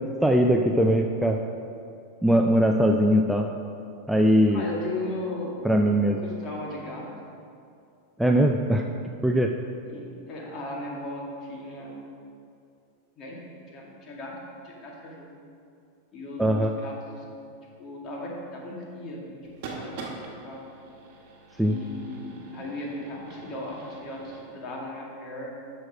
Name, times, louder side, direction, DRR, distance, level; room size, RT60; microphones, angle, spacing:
voice 1, 0.2-1.4 2.2-3.5 4.1-4.6 5.6-6.2 8.2-8.8 9.2-9.5 16.4-16.7 21.6-21.8, equal, 5° right, 3 dB, 0.4 m, -21 dB
voice 2, 4.5-5.7 6.2-7.0 9.8-12.0 13.2-13.4 13.7-14.3 14.6-15.3 16.1-17.2 17.8-20.0 20.4-20.6 21.6-25.5, left 2 dB, 40° left, -3 dB, 2.0 m, -37 dB
sound 1, 19.4-24.5, right 3 dB, 60° right, 1.4 m, -43 dB
6.4 x 6.4 x 5.0 m, 2.4 s
hypercardioid pair, 105°, 0 cm